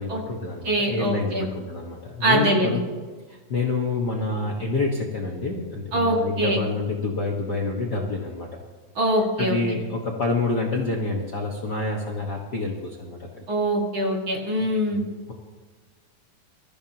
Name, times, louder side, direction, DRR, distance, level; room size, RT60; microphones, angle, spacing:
voice 1, 0.0-2.8 3.3-8.5 9.4-13.4 14.9-15.0, left 3 dB, 85° left, -1 dB, 0.9 m, -27 dB
voice 2, 0.6-1.5 2.2-2.8 5.9-6.6 8.9-9.8 13.5-15.0, right 1 dB, 40° right, -1 dB, 2.5 m, -23 dB
23.0 x 14.0 x 2.9 m, 1.4 s
omnidirectional pair, 4.2 m